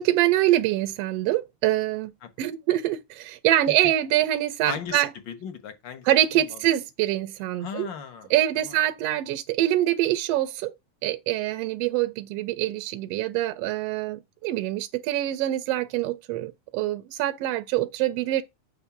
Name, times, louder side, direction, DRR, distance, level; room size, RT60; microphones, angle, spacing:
voice 1, 0.0-2.1 2.4-5.1 6.1-7.9 8.3-10.7 11.0-18.4, right 14 dB, 75° right, 1.5 m, -25 dB
voice 2, 4.6-6.1 6.3-6.7 7.6-8.8, left 7 dB, 60° left, 1.3 m, -37 dB
7.2 x 3.5 x 5.8 m
omnidirectional pair, 3.3 m